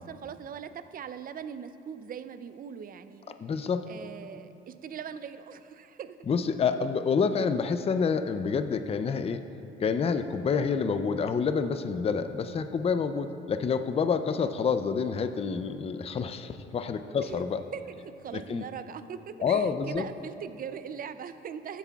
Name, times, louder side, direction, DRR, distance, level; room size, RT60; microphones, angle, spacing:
voice 1, 0.0-3.3 3.9-6.2 17.2-17.4 17.7-21.8, right 7 dB, 45° right, 11 dB, 0.5 m, -41 dB
voice 2, 3.4-3.9 6.3-9.4 9.8-17.6 18.3-18.6 19.4-20.0, left 5 dB, 30° left, 9 dB, 0.4 m, -28 dB
15.5 x 8.2 x 2.3 m, 3.0 s
cardioid pair, 90°, 20 cm